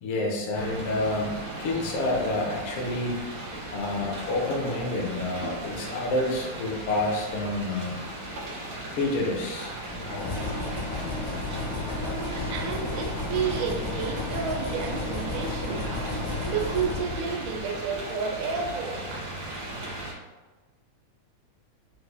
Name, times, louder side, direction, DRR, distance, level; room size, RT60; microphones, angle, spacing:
voice 1, 0.0-3.2 3.7-8.0 8.9-9.7 10.3-10.7, left 2 dB, 70° left, -1 dB, 1.4 m, -29 dB
sound 1, 0.5-20.1, right 1 dB, 65° right, 0.8 m, -37 dB
sound 2, 9.8-17.8, left 3 dB, 90° left, 1.0 m, -33 dB
voice 2, 12.0-16.1 16.5-19.0, right 6 dB, 90° right, 1 dB, 2.0 m, -31 dB
6.1 x 2.1 x 3.3 m, 1.2 s
omnidirectional pair, 3.4 m